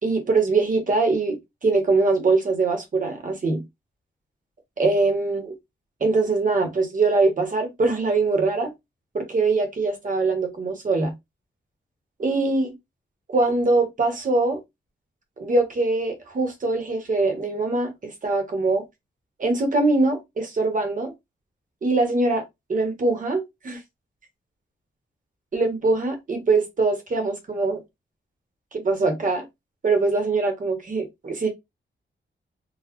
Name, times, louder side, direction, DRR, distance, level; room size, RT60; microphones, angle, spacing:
voice 1, 0.0-3.6 4.8-5.5 6.0-8.7 9.1-11.1 12.2-12.7 13.3-14.6 15.4-18.8 19.4-21.1 21.8-22.4 22.7-23.8 25.5-27.8 28.7-29.4 29.8-31.5, right 3 dB, 40° right, 1.1 m, -22 dB
3.9 x 2.3 x 3.0 m
wide cardioid pair, 175°, 20 cm